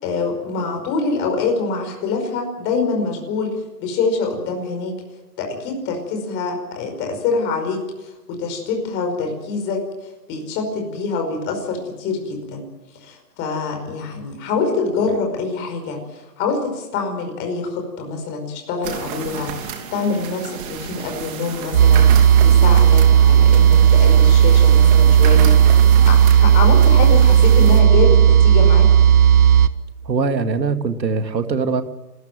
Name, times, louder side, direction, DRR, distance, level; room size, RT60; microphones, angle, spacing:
voice 1, 0.0-3.5 3.8-5.0 5.4-9.9 10.3-12.7 12.9-16.0 16.4-28.9, left 4 dB, 25° left, 4 dB, 5.2 m, -25 dB
sound 1, 18.8-27.8, right 7 dB, 30° right, 3.1 m, -32 dB
sound 2, 21.7-29.7, right 9 dB, 60° right, 1.5 m, -12 dB
voice 2, 30.0-31.8, right 4 dB, 90° right, 8 dB, 2.4 m, -21 dB
28.0 x 14.0 x 9.1 m, 1.1 s
hypercardioid pair, 150°, 49 cm